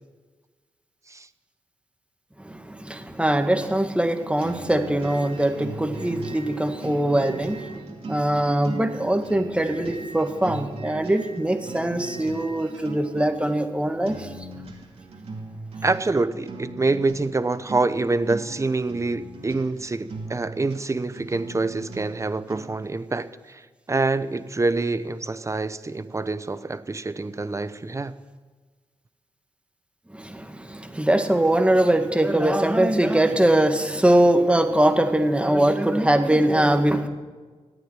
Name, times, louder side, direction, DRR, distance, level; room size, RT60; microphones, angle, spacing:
voice 1, 2.4-14.5 30.1-37.1, right 1 dB, 10° right, 6 dB, 1.9 m, -22 dB
sound 1, 4.4-22.9, right 3 dB, 70° right, 2.6 m, -39 dB
voice 2, 15.8-28.2, right 3 dB, 30° right, 13 dB, 1.0 m, -26 dB
14.5 x 9.2 x 9.1 m, 1.4 s
cardioid pair, 60°, 11 cm